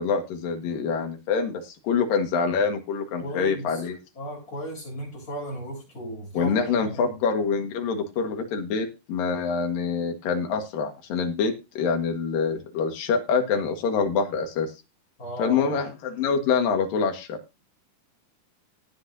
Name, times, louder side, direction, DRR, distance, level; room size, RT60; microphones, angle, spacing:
voice 1, 0.0-4.0 6.4-14.7 15.4-17.4, left 5 dB, 80° left, 3.3 m, -25 dB
voice 2, 3.2-3.8 4.1-7.2 15.2-15.7, equal, 25° left, 8.2 m, -35 dB
18.0 x 8.5 x 2.7 m
omnidirectional pair, 3.9 m